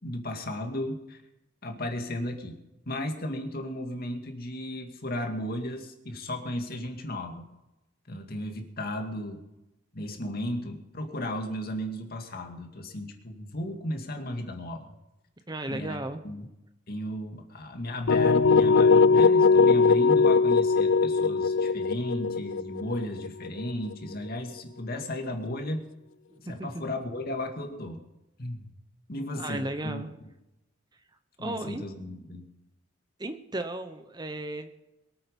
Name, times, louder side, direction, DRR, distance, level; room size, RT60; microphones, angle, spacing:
voice 1, 0.0-1.2 1.6-2.6 2.9-7.5 8.1-9.4 9.9-14.9 15.7-16.5 16.9-25.8 26.5-28.0 28.4-28.7 29.1-30.1 31.4-32.5, left 1 dB, 50° left, 3 dB, 2.2 m, -35 dB
voice 2, 15.5-16.2 26.3-26.7 29.4-30.1 31.4-31.8 33.2-34.8, right 1 dB, 20° right, 9 dB, 0.8 m, -35 dB
sound 1, 18.1-23.9, left 4 dB, 70° left, 0.4 m, -21 dB
23.5 x 8.6 x 5.3 m, 0.94 s
head